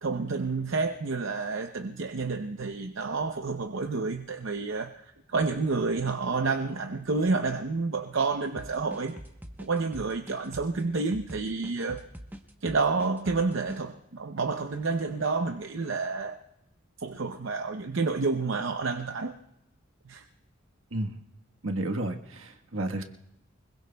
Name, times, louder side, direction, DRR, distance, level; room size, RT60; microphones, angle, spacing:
voice 1, 0.0-9.2 9.6-12.0 12.6-16.4 17.0-19.3 20.0-20.3, right 4 dB, 70° right, 5 dB, 0.7 m, -29 dB
sound 1, 8.6-13.8, equal, 10° right, 0.9 m, -44 dB
voice 2, 21.6-23.0, right 1 dB, 85° right, 3 dB, 1.3 m, -31 dB
24.5 x 21.5 x 2.3 m, 0.81 s
head